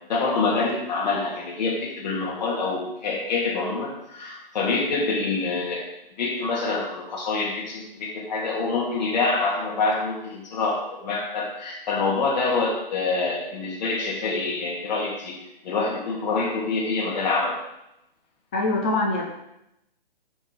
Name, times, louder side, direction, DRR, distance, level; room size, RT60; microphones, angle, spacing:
voice 1, 0.1-5.8 6.2-15.3 15.6-17.6, left 3 dB, 45° left, -3 dB, 2.7 m, -26 dB
voice 2, 18.5-19.2, left 2 dB, 10° left, 0 dB, 0.4 m, -23 dB
9.9 x 3.9 x 6.7 m, 0.85 s
hypercardioid pair, 150°, 29 cm